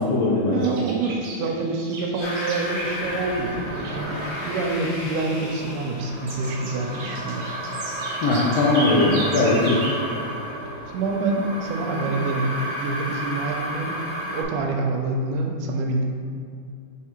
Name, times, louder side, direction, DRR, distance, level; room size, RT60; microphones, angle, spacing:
voice 1, 0.0-0.6 8.2-9.8, left 2 dB, 75° left, -6 dB, 1.5 m, -20 dB
voice 2, 0.5-7.5 10.9-16.0, right 3 dB, 85° right, 2 dB, 2.1 m, -27 dB
sound 1, 0.6-3.5 3.7-4.9 5.2-6.0 6.3-10.0, right 2 dB, 60° right, 1.8 m, -36 dB
sound 2, 2.2-14.4, right 1 dB, 45° left, 1.5 m, -32 dB
6.2 x 3.6 x 4.4 m, 2.5 s
omnidirectional pair, 3.6 m